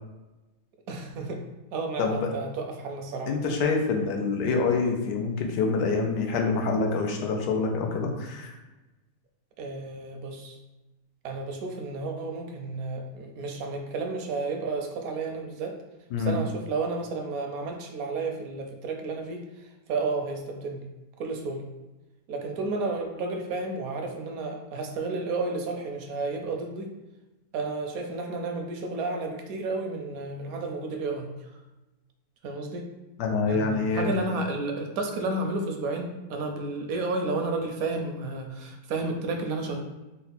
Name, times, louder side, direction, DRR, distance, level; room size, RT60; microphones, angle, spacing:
voice 1, 0.9-1.4 1.7-3.3 9.6-10.6 11.2-15.7 16.2-19.4 19.9-20.8 21.2-21.6 22.3-26.9 27.5-31.3 32.4-32.9 33.5-39.8, right 3 dB, 70° right, 3 dB, 0.9 m, -32 dB
voice 2, 2.0-2.3 3.3-8.5 16.1-16.4 33.2-34.1, left 4 dB, 85° left, 2 dB, 1.3 m, -26 dB
4.2 x 2.1 x 4.0 m, 1.1 s
omnidirectional pair, 1.8 m